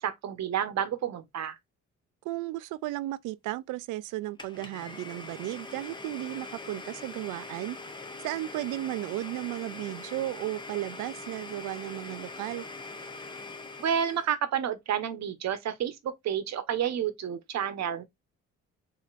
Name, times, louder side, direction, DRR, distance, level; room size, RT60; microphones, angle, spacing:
voice 1, 0.0-1.6 13.8-18.0, right 9 dB, 60° right, 0.9 m, -30 dB
voice 2, 2.2-7.8 8.2-12.7, right 16 dB, 90° right, 0.5 m, -34 dB
Domestic sounds home sounds, 4.4-14.4, left 3 dB, 15° left, 0.9 m, -43 dB
7.3 x 2.8 x 2.4 m
cardioid pair, 90°, 30 cm